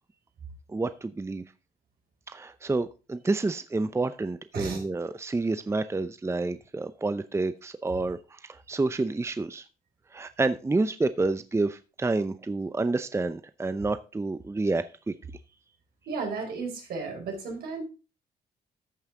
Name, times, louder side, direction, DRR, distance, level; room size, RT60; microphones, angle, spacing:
voice 1, 0.7-1.4 2.3-9.6 10.1-15.1, right 3 dB, 15° right, 0.6 m, -29 dB
voice 2, 16.1-17.8, right 4 dB, 75° right, 4.5 m, -34 dB
14.0 x 5.6 x 3.7 m
supercardioid pair, 70°, 16 cm